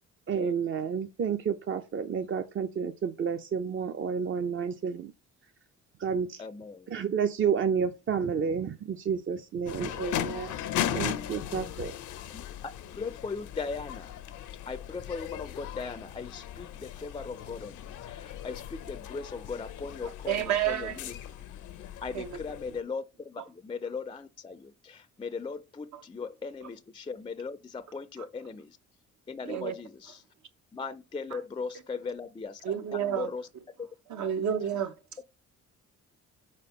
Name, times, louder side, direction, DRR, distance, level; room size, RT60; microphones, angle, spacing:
voice 1, 0.3-5.1 6.0-6.4 6.9-10.6 10.9-12.0, right 7 dB, 40° right, 0.5 m, -30 dB
voice 2, 6.4-6.9 12.3-12.4 12.9-14.2 14.7-21.1 22.0-28.8 29.3-30.2 30.7-33.5 33.8-33.9 34.2-34.3, left 4 dB, 15° left, 0.4 m, -38 dB
sound 1, 9.7-22.8, left 11 dB, 85° left, 0.7 m, -38 dB
voice 3, 20.3-21.0 22.1-22.3 29.5-29.7 32.6-33.3 34.1-34.9, right 9 dB, 70° right, 0.9 m, -29 dB
4.4 x 4.3 x 5.3 m
cardioid pair, 90°, 30 cm